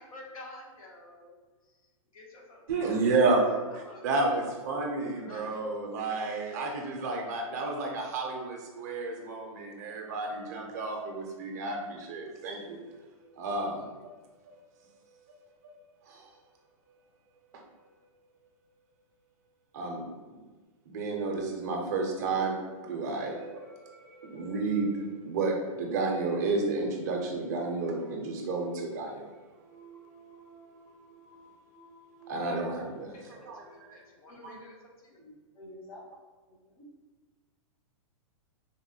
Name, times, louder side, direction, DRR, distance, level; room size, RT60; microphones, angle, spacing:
voice 1, 0.0-1.4 2.1-3.2 3.7-4.0 5.1-5.5 32.4-32.5 33.1-34.8 35.0-35.2, left 2 dB, 90° left, -1 dB, 0.9 m, -50 dB
voice 2, 2.7-12.8 13.4-14.2 14.5-14.6 15.2-15.3 15.6-15.7 16.1-16.3 17.5-17.6 19.7-20.0 20.9-22.6 22.8-29.3 29.6-34.0, right 3 dB, 30° right, 1 dB, 0.5 m, -32 dB
voice 3, 35.1-36.1 36.5-36.8, left 1 dB, 65° left, -7 dB, 1.1 m, -50 dB
3.5 x 2.1 x 2.7 m, 1.3 s
hypercardioid pair, 180°, 18 cm